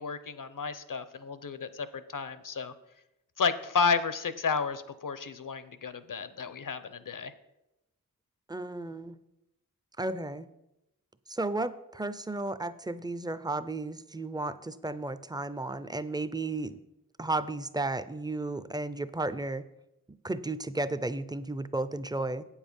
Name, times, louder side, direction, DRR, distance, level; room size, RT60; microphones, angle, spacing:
voice 1, 0.0-2.7 3.4-7.3, left 5 dB, 65° left, 13 dB, 0.7 m, -32 dB
voice 2, 8.5-9.2 10.0-10.5 11.3-16.8 17.2-19.6 20.2-22.4, right 2 dB, 10° right, 14 dB, 0.5 m, -33 dB
8.4 x 7.2 x 5.4 m, 0.90 s
wide cardioid pair, 60°, 35 cm